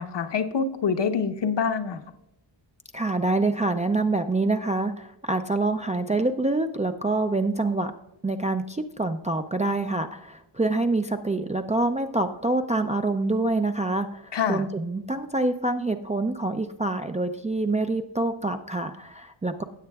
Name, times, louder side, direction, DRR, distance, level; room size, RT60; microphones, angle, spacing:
voice 1, 0.0-2.0 14.3-14.6, left 6 dB, 60° left, 7 dB, 0.9 m, -26 dB
voice 2, 2.9-7.9 8.2-19.6, right 2 dB, 15° right, 6 dB, 0.3 m, -26 dB
16.5 x 7.5 x 2.3 m, 0.89 s
wide cardioid pair, 130°, 47 cm